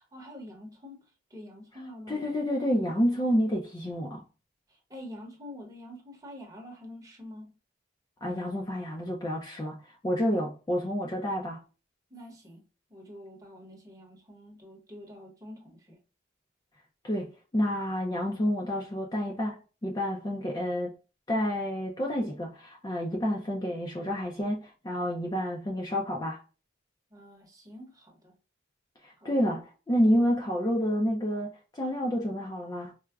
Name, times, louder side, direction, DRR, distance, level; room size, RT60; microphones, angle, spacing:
voice 1, 0.0-2.3 4.7-7.5 12.1-12.6 12.9-16.0 27.1-28.4 29.2-29.4, left 1 dB, 20° right, 0.8 m, -46 dB
voice 2, 2.1-4.2 8.2-11.6 17.0-20.9 21.3-26.4 29.0-32.9, equal, 20° left, 0.4 m, -29 dB
4.5 x 2.1 x 2.3 m
head